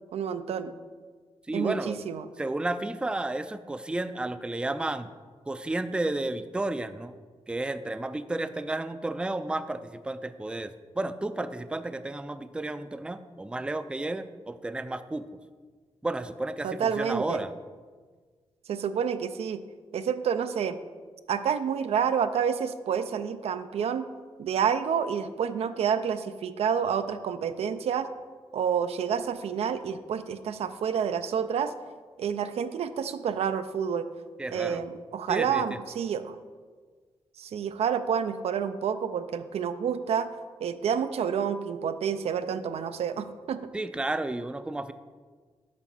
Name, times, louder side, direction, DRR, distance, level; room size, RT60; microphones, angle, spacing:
voice 1, 0.1-0.7 1.5-2.3 16.6-17.4 18.7-19.6 19.9-20.8 21.3-24.0 24.4-28.1 28.5-31.7 32.2-34.1 34.5-36.4 37.4-40.3 40.6-43.6, right 7 dB, 85° right, 10 dB, 0.4 m, -29 dB
voice 2, 1.5-2.0 2.4-5.1 5.5-7.1 7.5-15.3 16.0-17.5 34.4-34.9 35.3-35.6 43.7-44.9, right 2 dB, 10° right, 12 dB, 0.3 m, -32 dB
7.6 x 4.0 x 6.0 m, 1.5 s
cardioid pair, 75°, 10 cm